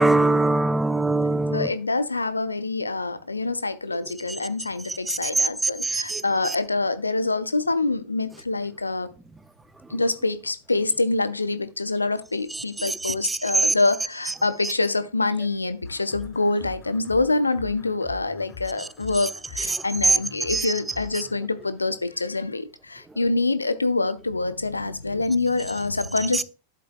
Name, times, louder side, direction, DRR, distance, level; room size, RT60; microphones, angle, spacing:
voice 1, 0.0-1.7 4.9-6.6 12.5-13.7 14.3-14.4 14.6-14.7 18.8-18.9 19.6-20.2 20.5-20.7 21.1-21.2 26.3-26.4, right 3 dB, 10° right, 0.4 m, -23 dB
voice 2, 1.5-9.1 9.9-26.4, left 3 dB, 80° left, 0.7 m, -25 dB
sound 1, 15.8-22.6, left 5 dB, 25° left, 4.1 m, -44 dB
11.5 x 7.6 x 2.3 m
figure-of-eight pair, 90°, 0 cm